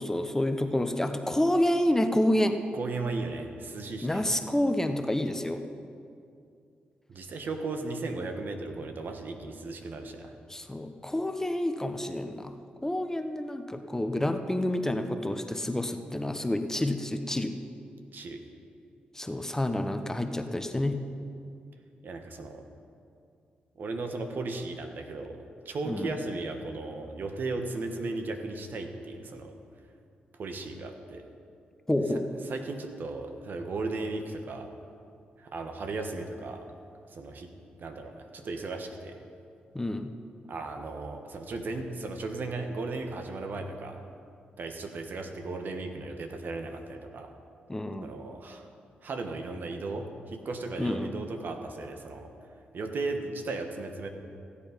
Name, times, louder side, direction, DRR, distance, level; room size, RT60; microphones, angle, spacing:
voice 1, 0.0-2.6 4.0-5.6 10.5-12.5 12.8-17.5 19.1-21.0 25.9-26.1 31.9-32.3 39.7-40.1 47.7-48.1 50.8-51.1, left 1 dB, 15° left, 7 dB, 0.9 m, -28 dB
voice 2, 2.7-4.3 7.1-10.3 18.1-18.4 22.0-22.6 23.8-25.4 25.6-29.6 30.4-31.3 32.1-34.7 35.4-36.7 37.1-37.5 37.8-39.2 40.5-44.0 44.6-47.3 48.0-48.7 49.0-52.3 52.7-54.1, right 3 dB, 60° right, 5 dB, 1.3 m, -36 dB
15.5 x 8.4 x 5.2 m, 2.5 s
supercardioid pair, 50°, 4 cm